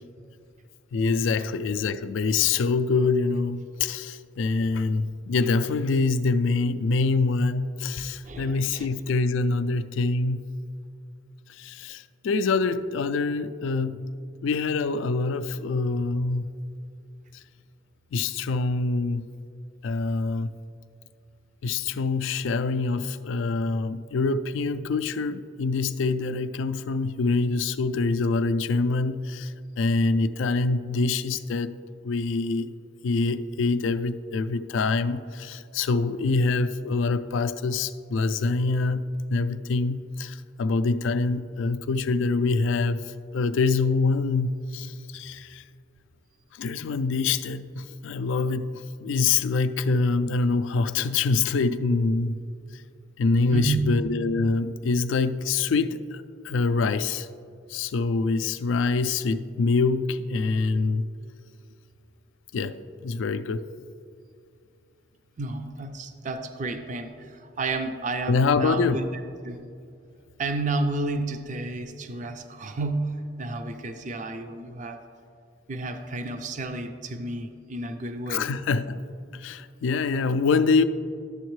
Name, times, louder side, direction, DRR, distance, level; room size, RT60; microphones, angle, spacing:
voice 1, 0.9-10.4 11.5-14.1 14.4-16.5 18.1-19.3 19.8-20.5 21.6-31.8 32.0-32.7 33.0-39.0 39.3-45.6 46.5-52.4 53.2-57.3 57.7-61.1 62.5-63.6 68.3-69.0 78.3-79.0 79.3-80.8, left 3 dB, 75° left, 0.3 m, -25 dB
voice 2, 8.2-8.9 53.5-54.0 65.4-69.6 70.4-75.0 75.7-78.5, right 2 dB, 40° right, 0.4 m, -31 dB
11.0 x 7.2 x 3.1 m
head